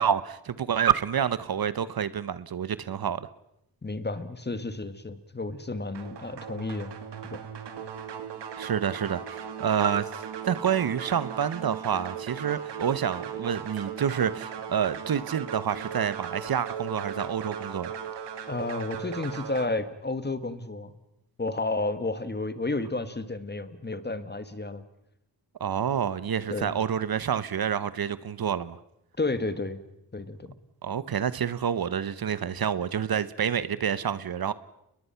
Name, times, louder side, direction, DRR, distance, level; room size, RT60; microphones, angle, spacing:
voice 1, 0.0-3.3 8.6-17.9 25.6-28.8 30.8-34.5, right 8 dB, 60° right, 1.0 m, -28 dB
voice 2, 3.8-6.9 7.3-7.4 18.5-20.9 21.4-24.8 26.5-26.8 29.2-29.8 30.1-30.5, left 2 dB, 25° left, 1.7 m, -31 dB
sound 1, 5.9-19.7, right 8 dB, 90° right, 1.8 m, -38 dB
30.0 x 21.5 x 5.8 m
wide cardioid pair, 90°, 40 cm